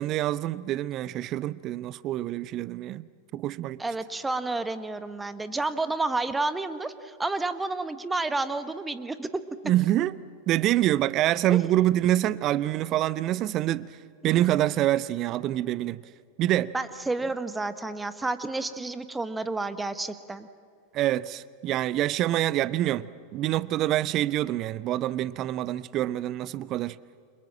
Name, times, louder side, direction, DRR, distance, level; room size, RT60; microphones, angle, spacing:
voice 1, 0.0-3.0 3.3-3.8 9.7-10.2 10.5-13.9 14.2-16.0 16.4-16.7 20.9-27.0, right 14 dB, 35° right, 0.6 m, -26 dB
voice 2, 3.8-9.3 11.5-11.6 14.2-14.5 16.7-20.5, right 3 dB, 10° right, 1.3 m, -30 dB
29.5 x 26.5 x 7.6 m
figure-of-eight pair, 90°, 0 cm